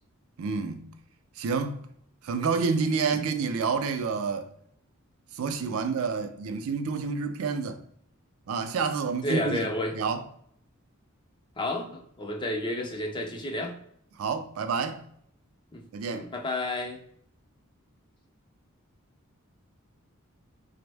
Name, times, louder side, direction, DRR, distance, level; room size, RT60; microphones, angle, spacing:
voice 1, 0.4-0.9 1.4-1.9 2.2-4.5 5.3-7.8 8.5-9.7 9.9-10.2 14.2-15.0 15.9-16.3, right 5 dB, 70° right, 0.4 m, -29 dB
voice 2, 9.2-10.0 11.6-13.7 15.7-15.8 16.1-17.0, left 1 dB, 20° left, 0.4 m, -31 dB
3.4 x 2.0 x 3.3 m
head